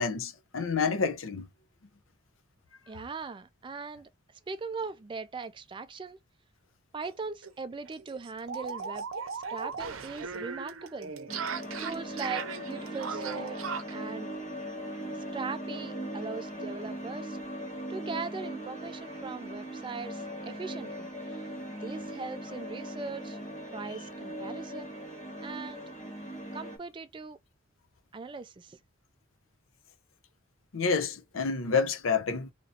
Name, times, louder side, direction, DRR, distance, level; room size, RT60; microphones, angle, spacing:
voice 1, 0.0-1.5 30.7-32.5, left 5 dB, 75° left, 0.6 m, -28 dB
voice 2, 2.9-4.1 4.5-6.2 6.9-9.1 9.3-11.1 11.8-13.6 13.9-14.3 15.3-17.4 17.9-21.4 21.8-23.4 23.7-24.9 25.4-25.9 26.5-27.4 28.1-28.8, right 4 dB, 25° right, 0.3 m, -40 dB
sound 1, 7.0-7.1 7.4-7.5 7.9-14.0, right 5 dB, 80° right, 0.6 m, -37 dB
sound 2, 11.3-26.8, right 1 dB, 35° left, 1.5 m, -39 dB
2.9 x 2.6 x 4.2 m
head